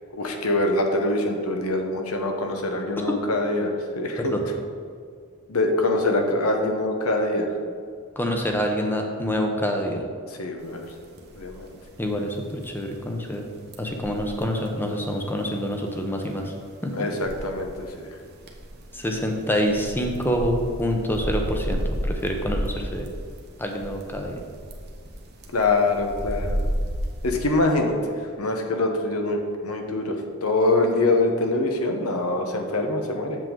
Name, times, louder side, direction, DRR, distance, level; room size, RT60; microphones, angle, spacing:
voice 1, 0.1-4.3 5.5-7.5 10.3-10.9 11.4-11.7 16.9-18.1 25.5-26.6 27.2-28.0 28.4-30.2 30.4-33.4, left 2 dB, 80° left, 3 dB, 1.0 m, -24 dB
voice 2, 8.2-10.0 12.0-13.4 13.8-16.4 16.8-16.9 18.9-23.1 23.6-24.4, equal, 10° left, 2 dB, 0.8 m, -26 dB
sound 1, 10.6-27.5, equal, 45° right, 1.0 m, -33 dB
7.6 x 7.3 x 3.8 m, 2.2 s
head